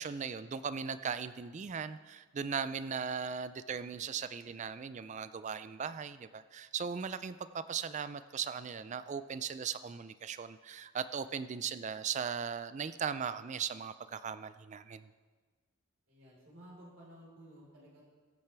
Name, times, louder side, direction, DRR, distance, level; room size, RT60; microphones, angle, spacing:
voice 1, 0.0-15.1, right 6 dB, 35° right, 13 dB, 0.3 m, -38 dB
voice 2, 16.1-18.0, right 1 dB, 60° right, -5 dB, 4.0 m, -54 dB
21.5 x 8.8 x 3.4 m, 1.4 s
head